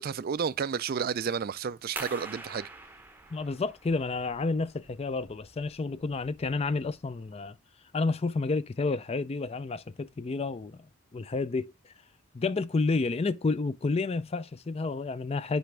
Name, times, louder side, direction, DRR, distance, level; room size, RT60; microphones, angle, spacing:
voice 1, 0.0-2.7, right 6 dB, 45° right, 0.4 m, -31 dB
sound 1, 2.0-7.3, right 2 dB, 10° right, 0.7 m, -46 dB
voice 2, 3.3-7.6 7.9-10.8 11.1-11.7 12.3-15.6, left 3 dB, 30° left, 0.4 m, -30 dB
10.0 x 3.4 x 3.3 m
head